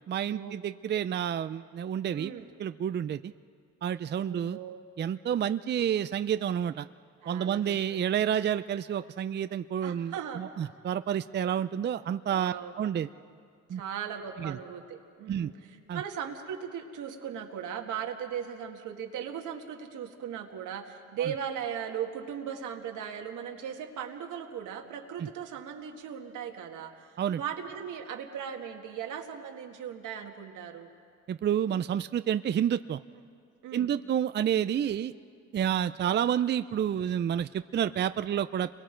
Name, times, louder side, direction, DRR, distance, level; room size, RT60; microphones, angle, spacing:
voice 1, 0.1-2.3 2.6-3.3 3.8-4.6 5.0-6.9 7.3-13.1 13.7-13.8 14.4-14.6 15.3-15.5 15.9-16.0 21.2-21.3 25.2-25.3 27.2-27.4 31.3-33.0 33.7-35.1 35.5-38.7, right 9 dB, 35° right, 12 dB, 0.4 m, -29 dB
voice 2, 2.1-2.5 4.2-4.8 7.2-7.8 8.4-8.5 9.8-10.4 12.3-12.7 13.7-15.5 15.9-26.9 27.4-30.9 33.6-33.9, right 8 dB, 85° right, 3 dB, 1.9 m, -38 dB
30.0 x 22.5 x 4.5 m, 2.2 s
cardioid pair, 90°, 30 cm